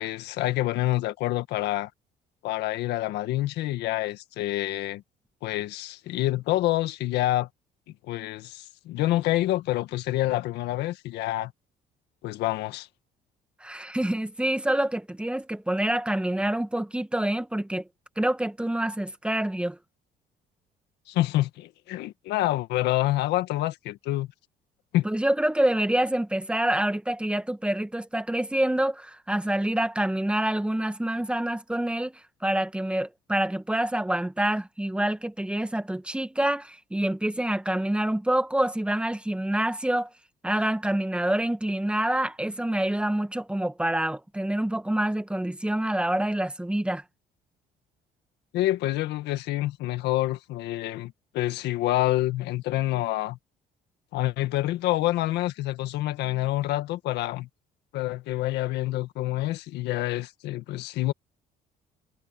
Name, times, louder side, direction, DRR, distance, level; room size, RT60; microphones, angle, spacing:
voice 1, 0.0-1.9 2.4-5.0 5.4-7.5 8.1-11.5 12.2-12.9 21.1-24.3 24.9-25.0 48.5-53.4 54.1-57.5 57.9-61.1, left 15 dB, 85° left, 1.7 m, -27 dB
voice 2, 13.6-17.8 18.2-19.8 25.0-40.1 40.4-47.0, right 1 dB, 5° right, 1.5 m, -27 dB
cardioid pair, 110°, 17 cm